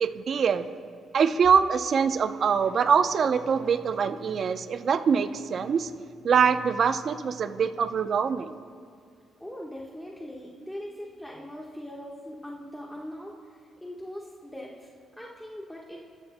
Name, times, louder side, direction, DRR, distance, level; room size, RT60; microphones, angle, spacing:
voice 1, 0.0-0.7 1.1-5.9 6.2-8.6, right 6 dB, 55° right, 10 dB, 0.6 m, -24 dB
voice 2, 9.4-14.9 15.2-16.0, equal, 5° left, -3 dB, 1.3 m, -41 dB
27.5 x 13.5 x 2.2 m, 2.3 s
cardioid pair, 90°, 0 cm